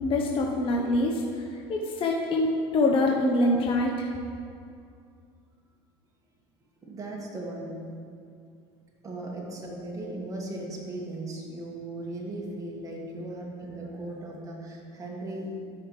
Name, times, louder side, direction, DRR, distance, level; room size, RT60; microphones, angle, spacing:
voice 1, 0.0-4.1, left 2 dB, 40° left, 0 dB, 1.0 m, -25 dB
voice 2, 6.8-7.8 9.0-15.5, right 2 dB, 25° right, -2 dB, 1.8 m, -37 dB
13.0 x 5.6 x 3.2 m, 2.3 s
hypercardioid pair, 85°, 14 cm